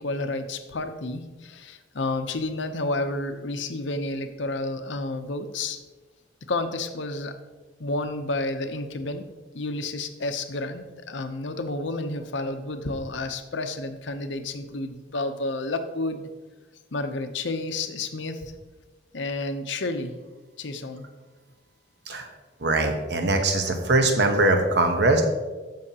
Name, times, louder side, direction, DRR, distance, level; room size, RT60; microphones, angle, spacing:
voice 1, 0.0-5.8 6.5-7.3 7.8-9.2 9.5-16.3 16.9-18.5 19.1-20.1 20.6-21.1, left 2 dB, 70° left, 8 dB, 0.8 m, -30 dB
voice 2, 22.6-25.2, right 2 dB, 60° right, 4 dB, 1.0 m, -21 dB
14.0 x 5.7 x 2.9 m, 1.3 s
head